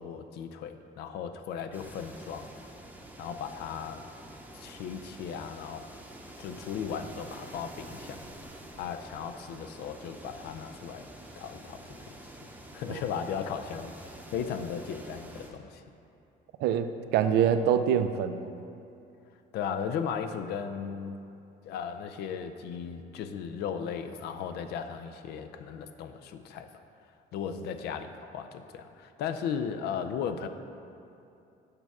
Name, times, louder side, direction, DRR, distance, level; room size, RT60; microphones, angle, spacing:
voice 1, 0.0-2.5 3.2-4.0 4.5-5.9 6.4-8.2 8.8-11.1 11.4-15.8 19.5-21.2 21.6-26.7 27.3-30.5, left 7 dB, 75° left, 8 dB, 0.5 m, -36 dB
sound 1, 1.7-15.5, right 1 dB, 10° right, 0.8 m, -48 dB
voice 2, 16.6-18.5, right 8 dB, 80° right, 10 dB, 0.4 m, -25 dB
6.6 x 3.5 x 6.0 m, 2.7 s
cardioid pair, 110°, 17 cm